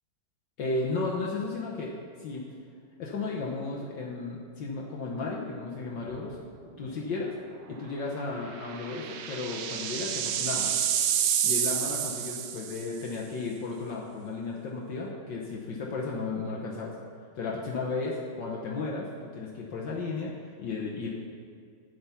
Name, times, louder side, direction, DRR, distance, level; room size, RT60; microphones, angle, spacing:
voice 1, 0.6-2.4 3.0-6.4 6.8-7.3 7.7-10.7 11.4-16.9 17.3-20.3 20.6-21.1, left 3 dB, 60° left, -2 dB, 1.6 m, -34 dB
sound 1, 6.1-6.5 6.8-6.9 8.4-13.0, right 9 dB, 70° right, 1.1 m, -29 dB
9.4 x 7.8 x 5.7 m, 2.3 s
omnidirectional pair, 2.3 m